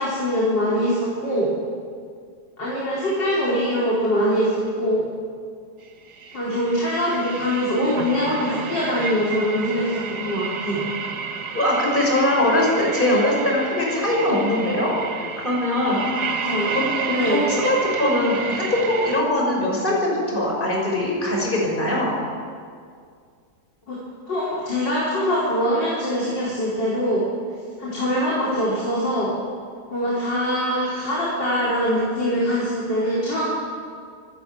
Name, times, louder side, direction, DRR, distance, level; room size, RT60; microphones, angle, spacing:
voice 1, 0.0-1.5 2.6-5.1 6.3-10.9 16.4-16.7 17.1-17.5 23.9-24.0 24.3-27.3 27.8-29.3 29.9-33.5, equal, 80° left, -6 dB, 5.0 m, -23 dB
sound 1, 6.1-19.2, right 5 dB, 65° right, 1.9 m, -31 dB
voice 2, 11.5-16.0 16.7-16.8 17.2-22.1, left 1 dB, 25° left, -2 dB, 6.3 m, -21 dB
25.0 x 14.0 x 9.3 m, 2.2 s
omnidirectional pair, 1.9 m